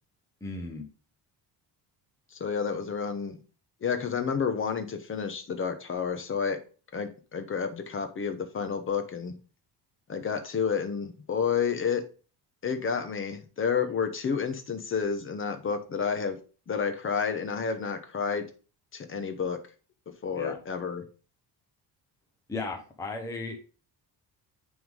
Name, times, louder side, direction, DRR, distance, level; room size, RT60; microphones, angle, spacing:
voice 1, 0.4-0.8 20.3-20.6 22.5-23.6, left 3 dB, 5° left, 2 dB, 0.8 m, -35 dB
voice 2, 2.4-3.4 3.8-6.6 6.9-9.3 10.1-12.0 12.6-16.4 16.7-18.5 18.9-19.6 20.2-21.0, left 6 dB, 30° left, 8 dB, 0.9 m, -30 dB
9.2 x 3.7 x 3.7 m, 0.36 s
cardioid pair, 170°, 43 cm